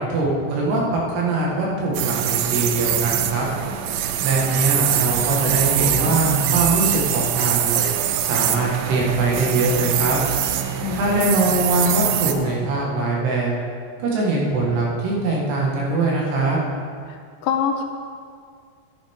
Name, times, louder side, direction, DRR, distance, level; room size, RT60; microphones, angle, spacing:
voice 1, 0.0-3.5 4.2-7.8 8.2-10.2 10.9-13.5 14.0-16.6, right 2 dB, 70° right, -3 dB, 3.8 m, -22 dB
sound 1, 1.5-12.5, equal, 45° left, 3.7 m, -41 dB
sound 2, 1.9-12.3, right 11 dB, 90° right, 2.0 m, -23 dB
voice 2, 10.8-11.3 17.1-17.8, left 7 dB, 80° left, 4 dB, 2.7 m, -26 dB
14.0 x 10.0 x 3.7 m, 2.1 s
omnidirectional pair, 5.0 m